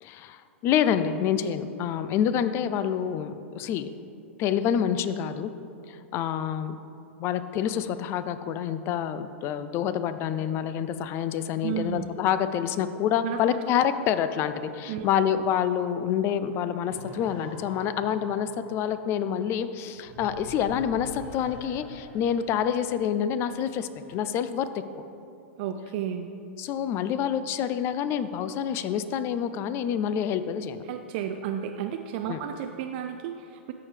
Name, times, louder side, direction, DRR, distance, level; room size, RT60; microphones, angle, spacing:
voice 1, 0.0-3.9 4.4-5.5 5.9-6.8 7.2-24.8 26.6-30.8 32.3-32.4, left 9 dB, 40° left, 12 dB, 0.4 m, -27 dB
voice 2, 11.6-12.1 13.2-13.4 14.9-15.1 25.6-26.3 30.9-33.7, right 9 dB, 55° right, 6 dB, 0.4 m, -32 dB
sound 1, 16.9-24.2, left 1 dB, 55° left, 1.7 m, -46 dB
13.5 x 4.8 x 3.4 m, 2.7 s
hypercardioid pair, 105°, 7 cm